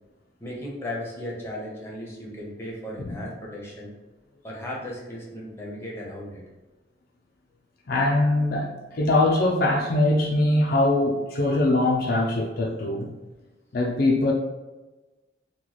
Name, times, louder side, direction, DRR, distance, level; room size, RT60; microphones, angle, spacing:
voice 1, 0.4-3.9 4.4-6.4, left 1 dB, 15° left, -3 dB, 0.7 m, -36 dB
voice 2, 7.9-13.1 13.7-14.3, left 2 dB, 55° left, -1 dB, 0.4 m, -22 dB
3.0 x 2.2 x 3.9 m, 1.1 s
head